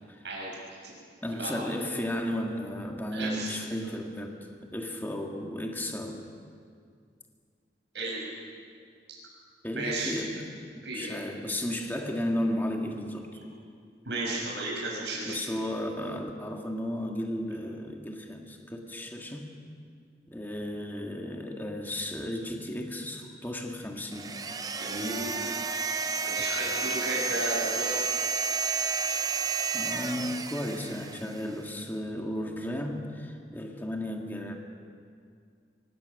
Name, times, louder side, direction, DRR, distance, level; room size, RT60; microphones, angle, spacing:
voice 1, 0.2-0.9 1.3-1.5 3.1-3.5 7.9-8.2 9.7-10.1 10.8-11.1 14.0-15.4 24.8-25.5 26.2-28.0, right 2 dB, 80° right, -4 dB, 6.8 m, -34 dB
voice 2, 1.2-6.4 9.6-10.4 10.7-13.3 15.3-19.6 20.3-24.4 29.7-34.5, left 1 dB, 10° left, 1 dB, 1.7 m, -34 dB
sound 1, 24.1-31.5, right 5 dB, 20° right, 0.7 m, -31 dB
24.5 x 19.0 x 6.4 m, 2.2 s
head